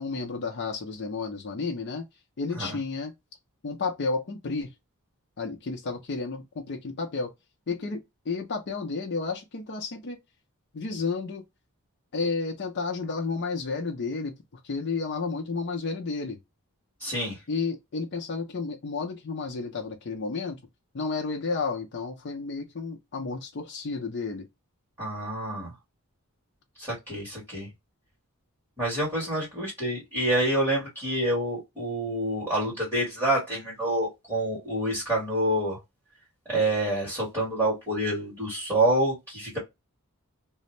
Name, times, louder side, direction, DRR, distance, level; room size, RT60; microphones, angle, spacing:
voice 1, 0.0-2.1 2.4-3.1 3.6-4.7 5.4-7.3 7.7-10.2 10.7-11.4 12.1-14.3 14.6-16.4 17.5-20.6 20.9-24.5, left 4 dB, 50° left, 0.5 m, -31 dB
voice 2, 17.0-17.4 25.0-25.7 26.8-27.7 28.8-35.8 36.5-39.6, right 1 dB, 15° right, 1.4 m, -27 dB
2.5 x 2.0 x 3.0 m
head